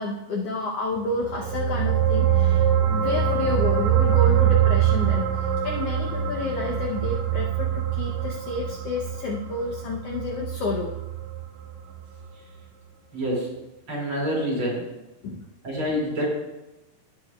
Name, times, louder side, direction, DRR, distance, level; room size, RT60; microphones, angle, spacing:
voice 1, 0.0-11.0 15.2-15.4, left 3 dB, 85° left, 0 dB, 1.3 m, -30 dB
sound 1, 1.1-11.8 12.2-12.3, right 9 dB, 85° right, 2.8 m, -24 dB
voice 2, 13.1-13.5 13.9-14.8 15.6-16.3, equal, 40° right, -4 dB, 3.1 m, -26 dB
17.0 x 7.2 x 2.3 m, 1.0 s
omnidirectional pair, 3.9 m